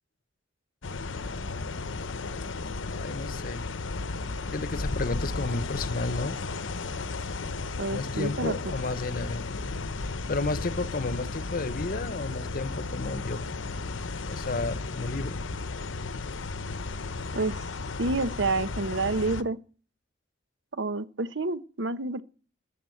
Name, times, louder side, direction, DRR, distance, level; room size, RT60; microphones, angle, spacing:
sound 1, 0.8-19.4, left 3 dB, 75° left, 0.8 m, -34 dB
voice 1, 2.9-3.6 4.5-6.4 7.9-9.4 10.0-13.5 14.3-15.4, left 3 dB, 45° left, 0.9 m, -32 dB
voice 2, 7.8-8.7 17.3-17.6 18.0-19.6 20.7-22.2, right 3 dB, 65° right, 1.0 m, -29 dB
13.5 x 8.7 x 7.8 m
head